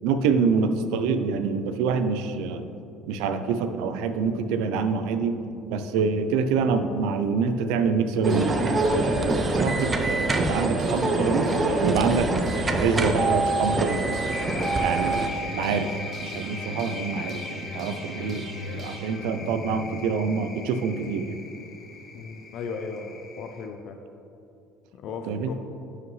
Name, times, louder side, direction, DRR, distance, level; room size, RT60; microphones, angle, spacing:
voice 1, 0.0-2.7 3.1-11.5 11.8-14.2 14.8-21.4 25.3-25.5, right 5 dB, 85° right, 9 dB, 0.5 m, -26 dB
sound 1, 8.2-15.3, right 2 dB, 20° right, 0.5 m, -25 dB
sound 2, 8.3-20.2, right 1 dB, 35° right, 1.0 m, -40 dB
sound 3, 14.3-23.7, left 5 dB, 35° left, 0.8 m, -40 dB
voice 2, 22.1-24.0 24.9-25.5, left 5 dB, 55° left, 5 dB, 0.4 m, -36 dB
11.0 x 4.9 x 3.2 m, 2.7 s
cardioid pair, 145°, 0 cm